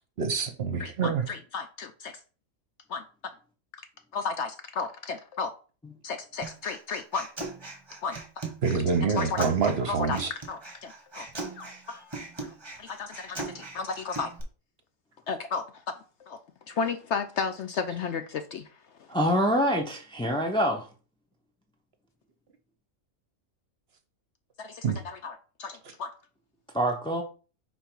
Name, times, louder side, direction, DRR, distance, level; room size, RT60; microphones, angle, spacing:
voice 1, 0.2-1.2 8.6-10.3 24.8-25.0, right 5 dB, 50° right, 7 dB, 0.9 m, -26 dB
voice 2, 0.8-2.2 2.9-3.0 4.1-5.5 6.0-7.3 8.0-8.2 9.1-11.3 11.6-12.5 12.8-14.3 15.3-15.9 16.3-16.4 16.7-18.7 19.0-19.1 24.6-26.1, left 5 dB, 65° left, 9 dB, 0.8 m, -34 dB
Human voice, 6.4-14.4, right 2 dB, 20° right, 1.2 m, -40 dB
voice 3, 19.1-20.9 26.7-27.2, equal, 10° left, 2 dB, 0.3 m, -25 dB
5.2 x 4.4 x 4.5 m, 0.37 s
omnidirectional pair, 1.5 m